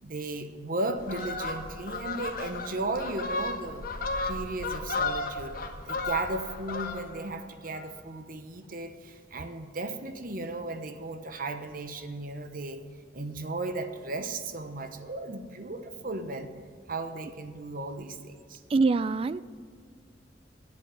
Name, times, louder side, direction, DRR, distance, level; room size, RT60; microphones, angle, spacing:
voice 1, 0.0-3.9 4.2-5.6 5.9-12.8 13.1-16.5 16.9-18.6, right 2 dB, 50° right, 8 dB, 1.0 m, -35 dB
Fowl, 1.0-7.3 7.7-7.9, left 3 dB, 55° left, 1.2 m, -34 dB
voice 2, 18.7-19.4, right 3 dB, 30° right, 17 dB, 0.3 m, -24 dB
11.0 x 7.3 x 9.5 m, 2.1 s
head